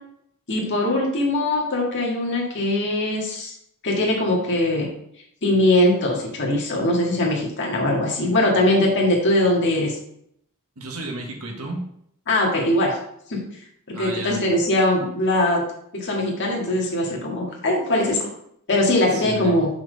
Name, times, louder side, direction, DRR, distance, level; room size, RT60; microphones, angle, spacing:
voice 1, 0.5-3.5 3.8-4.9 5.4-10.0 12.3-13.0 13.3-13.4 14.0-15.6 15.9-18.3 18.7-19.7, left 1 dB, 55° left, -2 dB, 1.9 m, -21 dB
voice 2, 10.8-11.8 13.9-14.4 19.1-19.6, right 2 dB, 75° right, 1 dB, 1.5 m, -33 dB
5.9 x 4.4 x 5.2 m, 0.72 s
head